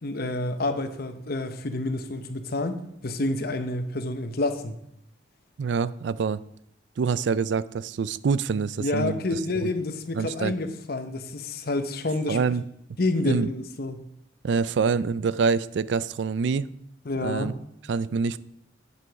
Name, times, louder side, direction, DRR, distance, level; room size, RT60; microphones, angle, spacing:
voice 1, 0.0-4.8 8.8-12.4 13.0-14.0 17.0-17.5, left 2 dB, 55° left, 9 dB, 0.9 m, -28 dB
voice 2, 5.6-6.4 7.0-9.7 10.1-10.5 12.3-12.6 13.3-13.5 14.4-16.7 17.2-17.5 17.9-18.4, right 5 dB, 65° right, 17 dB, 0.4 m, -26 dB
8.6 x 7.8 x 4.7 m, 0.74 s
head